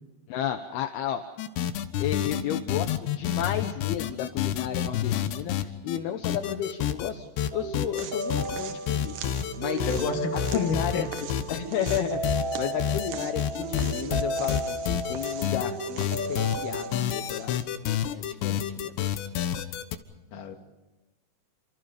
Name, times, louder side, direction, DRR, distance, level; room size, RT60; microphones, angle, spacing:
voice 1, 0.3-1.2 2.0-9.2 9.6-9.9 10.5-11.1 11.5-18.9 20.3-20.4, left 10 dB, 75° left, 7 dB, 2.9 m, -33 dB
sound 1, 1.4-6.0 6.2-7.1 7.4-8.6 8.9-10.1 10.4-11.6 11.9-20.0, left 10 dB, 90° left, 3.5 m, -29 dB
sound 2, 7.5-17.0, right 1 dB, 40° right, 3.5 m, -34 dB
sound 3, 8.0-17.6, right 9 dB, 65° right, 2.2 m, -44 dB
voice 2, 9.7-11.3 20.3-20.5, left 6 dB, 55° left, 4 dB, 3.3 m, -30 dB
29.0 x 26.5 x 5.2 m, 1.1 s
omnidirectional pair, 4.9 m